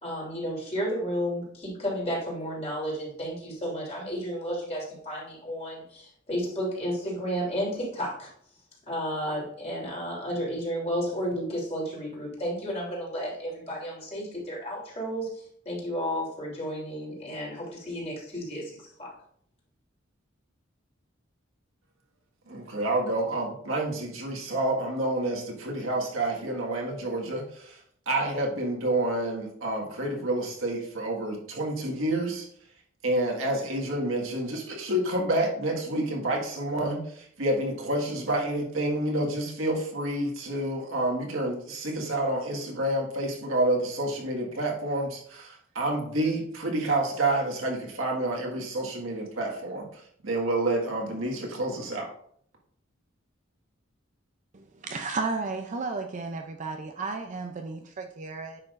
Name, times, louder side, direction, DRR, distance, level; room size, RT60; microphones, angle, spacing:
voice 1, 0.0-8.3 8.9-19.1, equal, 35° left, -4 dB, 3.3 m, -32 dB
voice 2, 22.5-27.8 28.1-32.5 33.0-49.9 50.2-52.1, right 1 dB, 85° right, -1 dB, 1.8 m, -29 dB
voice 3, 54.5-58.6, right 3 dB, 40° right, 4 dB, 0.5 m, -33 dB
9.9 x 5.9 x 2.5 m, 0.64 s
head